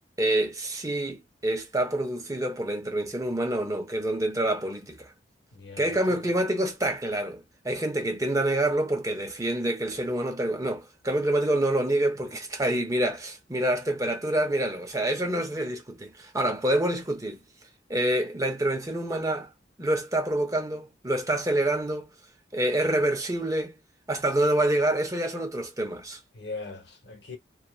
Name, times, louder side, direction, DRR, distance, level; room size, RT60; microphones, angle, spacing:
voice 1, 0.2-5.1 5.8-17.4 17.9-19.5 19.8-22.1 22.5-23.7 24.1-26.2, right 1 dB, 20° right, 0.6 m, -27 dB
voice 2, 5.5-6.2 26.3-27.4, left 3 dB, 65° left, 1.0 m, -40 dB
2.9 x 2.3 x 2.3 m
head